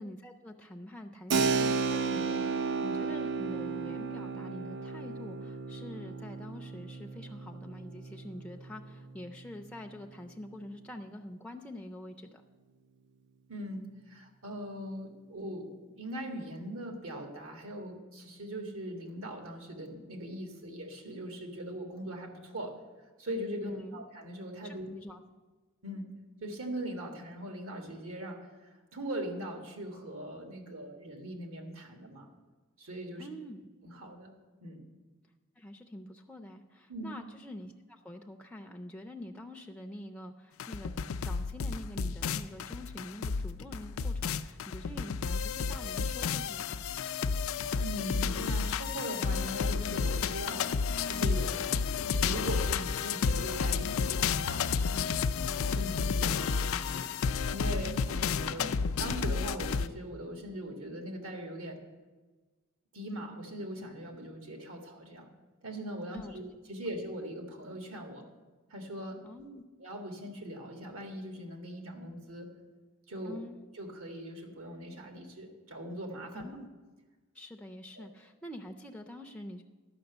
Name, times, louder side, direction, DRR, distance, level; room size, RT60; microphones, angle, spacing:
voice 1, 0.0-12.4 23.6-24.0 24.6-25.2 33.2-33.6 35.6-40.9 41.2-46.9 54.9-55.3 58.6-58.8 66.1-66.5 69.2-69.6 73.2-73.6 76.3-76.7 77.3-79.6, left 1 dB, 5° left, 3 dB, 0.5 m, -45 dB
Keyboard (musical), 1.3-9.7, right 4 dB, 55° right, 0.5 m, -34 dB
voice 2, 13.5-15.7 16.0-22.7 23.2-24.9 25.8-26.1 26.4-28.4 28.9-32.3 32.8-33.3 33.8-34.3 34.6-34.9 36.9-37.1 47.8-50.7 51.1-51.5 52.1-54.7 55.6-57.1 57.5-58.7 59.0-61.8 62.9-65.3 65.6-66.4 66.7-68.2 68.7-69.2 69.8-72.5 73.1-73.4 73.8-76.4 78.0-78.1, right 1 dB, 75° right, 4 dB, 1.8 m, -40 dB
sound 1, 40.6-59.9, left 5 dB, 70° left, 0.4 m, -31 dB
11.5 x 6.0 x 7.9 m, 1.3 s
head